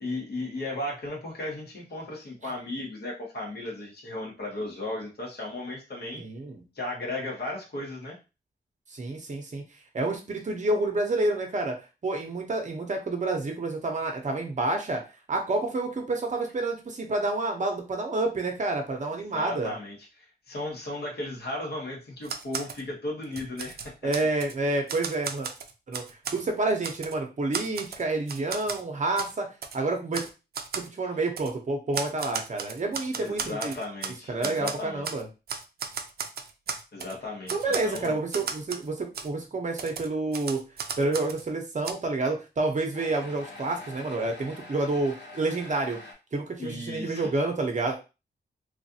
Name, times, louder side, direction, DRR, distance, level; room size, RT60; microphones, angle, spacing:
voice 1, 0.0-6.2 6.7-8.2 19.3-20.0 20.5-23.9 33.1-35.1 36.9-37.6 37.8-38.2 46.6-47.3, left 2 dB, 65° left, -2 dB, 1.4 m, -35 dB
voice 2, 6.2-6.6 8.9-9.6 9.9-11.8 12.0-15.0 15.3-19.7 24.0-25.5 25.9-26.0 26.3-29.5 29.7-30.3 30.8-33.8 34.3-35.3 37.5-40.6 41.0-46.0 46.3-48.0, right 2 dB, 45° right, 3 dB, 0.8 m, -29 dB
Typewriter, 22.2-22.8 23.2-24.5 24.9-26.4 26.8-27.2 27.5-28.8 29.2-29.3 29.6-29.8 30.1-30.3 30.5-30.9 31.4-31.5 31.9-34.2 34.4-35.2 35.5-37.1 37.5-38.9 39.1-39.3 39.8-41.4 41.8-41.9, right 6 dB, 60° right, 0.4 m, -35 dB
sound 1, 38.0-38.5 38.9-39.0 39.7-39.8 40.5-40.6 42.9-46.1, left 2 dB, 90° left, 1.0 m, -45 dB
3.1 x 2.5 x 2.7 m, 0.29 s
wide cardioid pair, 125°, 18 cm